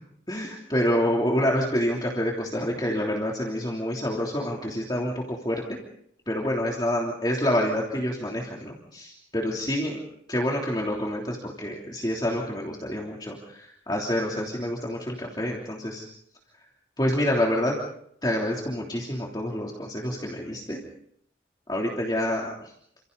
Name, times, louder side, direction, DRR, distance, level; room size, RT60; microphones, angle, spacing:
voice 1, 0.3-5.6 6.3-10.0 10.3-16.1 17.0-17.8 18.2-20.8 21.7-22.5, equal, 25° left, -2 dB, 3.2 m, -27 dB
29.5 x 27.5 x 4.1 m, 0.69 s
head